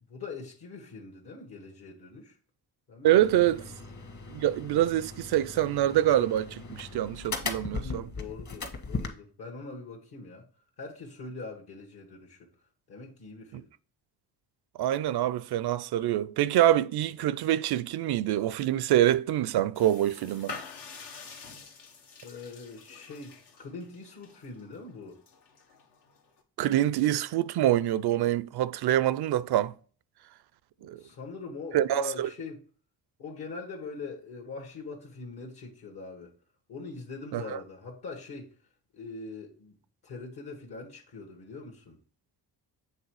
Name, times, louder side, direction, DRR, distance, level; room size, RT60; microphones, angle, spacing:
voice 1, 0.1-2.4 2.9-3.3 7.7-10.5 10.8-12.5 12.9-13.7 22.2-25.2 30.8-32.6 33.2-36.3 36.7-38.5 38.9-39.8 40.0-42.0, left 3 dB, 60° left, 1.6 m, -42 dB
voice 2, 3.0-3.6 4.3-8.1 13.5-13.6 14.8-20.6 26.6-29.7 30.8-31.0 31.7-32.3 37.3-37.6, right 12 dB, 65° right, 0.5 m, -25 dB
sound 1, 3.2-9.1, left 4 dB, 45° left, 1.6 m, -38 dB
sound 2, 19.7-26.4, left 5 dB, 75° left, 1.4 m, -47 dB
7.4 x 3.5 x 4.8 m
cardioid pair, 75°, 42 cm